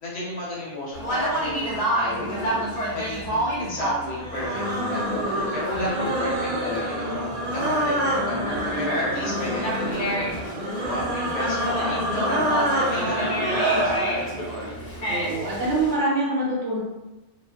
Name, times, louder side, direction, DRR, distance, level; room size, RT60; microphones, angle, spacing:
voice 1, 0.0-2.5 2.9-7.0 7.4-10.1 10.7-14.5, left 1 dB, 85° left, -6 dB, 1.1 m, -33 dB
Conversation, 0.9-15.9, right 1 dB, 40° left, 0.7 m, -29 dB
sound 1, 4.2-14.1, right 1 dB, 50° right, 0.5 m, -27 dB
voice 2, 15.1-16.8, right 2 dB, 75° right, -5 dB, 0.8 m, -25 dB
2.5 x 2.2 x 2.2 m, 1.1 s
omnidirectional pair, 1.2 m